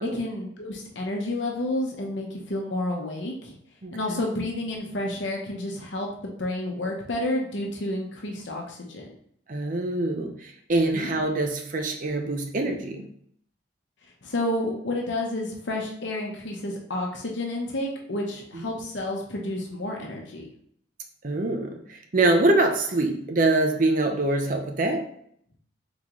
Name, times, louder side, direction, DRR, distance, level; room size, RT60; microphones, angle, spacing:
voice 1, 0.0-3.5 3.9-9.1 10.9-11.1 14.2-20.4, left 1 dB, 75° left, 0 dB, 0.8 m, -30 dB
voice 2, 3.8-4.2 9.5-13.0 18.5-18.8 21.2-25.1, right 2 dB, 45° right, 4 dB, 0.6 m, -24 dB
3.9 x 3.7 x 3.0 m, 0.65 s
head